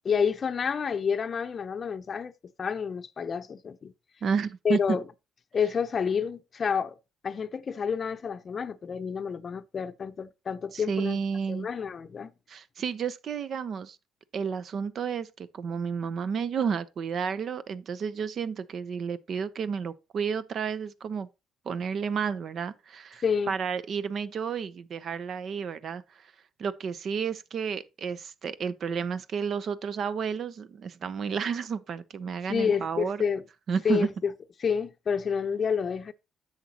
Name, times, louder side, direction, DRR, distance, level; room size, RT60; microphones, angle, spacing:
voice 1, 0.0-2.3 2.6-3.9 4.6-5.0 5.5-6.9 7.2-11.2 11.5-12.3 23.2-23.5 32.5-33.4 33.8-34.3 34.6-36.1, left 6 dB, 40° left, 0.7 m, -29 dB
voice 2, 4.2-4.8 10.7-11.7 12.5-14.0 14.3-21.3 21.7-26.3 26.6-33.2 33.7-34.1, right 6 dB, 55° right, 0.7 m, -31 dB
10.0 x 7.3 x 2.9 m
cardioid pair, 95°, 0 cm